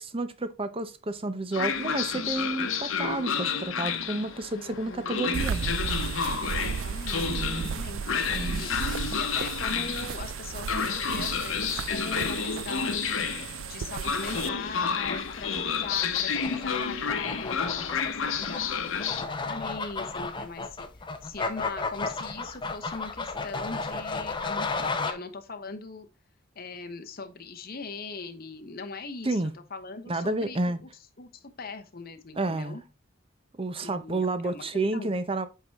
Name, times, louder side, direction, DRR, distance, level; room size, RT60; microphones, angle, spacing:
voice 1, 0.0-5.8 7.2-7.8 8.3-8.7 29.2-29.5 30.1-30.8 32.4-32.8 33.5-35.5, right 2 dB, 25° right, 0.7 m, -30 dB
Train, 1.5-19.2, left 6 dB, 75° left, 1.0 m, -30 dB
voice 2, 4.5-5.2 6.4-13.3 13.7-20.9 21.2-26.1 26.5-29.4 29.7-30.9 31.2-32.8 33.8-34.6 34.9-35.1, left 4 dB, 45° left, 1.0 m, -40 dB
sound 1, 5.3-14.5, right 7 dB, 70° right, 0.3 m, -34 dB
sound 2, 14.2-25.1, left 3 dB, 25° left, 0.7 m, -34 dB
8.0 x 4.6 x 3.5 m
head